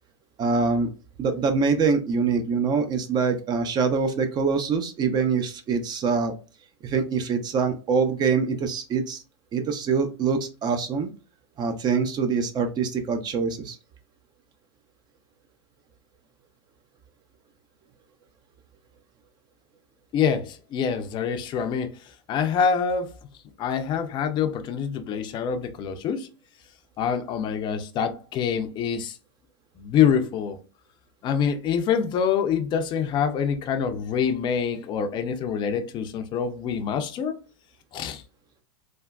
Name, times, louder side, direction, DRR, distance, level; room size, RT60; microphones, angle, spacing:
voice 1, 0.4-0.9 1.2-6.3 6.8-9.2 9.5-11.1 11.6-13.8, right 5 dB, 30° right, 0.5 m, -24 dB
voice 2, 20.1-21.9 22.3-23.2 23.6-26.3 27.0-29.2 29.8-30.6 31.2-37.4 37.9-38.2, left 7 dB, 30° left, 0.5 m, -25 dB
3.3 x 2.1 x 2.3 m
hypercardioid pair, 110°, 15 cm